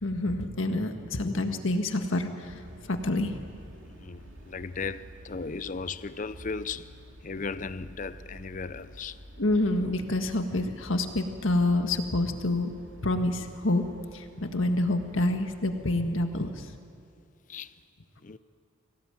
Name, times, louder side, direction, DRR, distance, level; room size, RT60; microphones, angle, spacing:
voice 1, 0.0-2.6 2.9-3.4 9.4-12.7 13.0-13.8 14.1-16.7, left 2 dB, 75° left, 1.7 m, -27 dB
sound 1, 2.4-16.8, equal, 75° right, 2.5 m, -49 dB
voice 2, 3.9-6.9 7.2-9.2 17.5-17.7 18.2-18.4, left 4 dB, 40° left, 0.5 m, -36 dB
24.5 x 17.0 x 9.1 m
head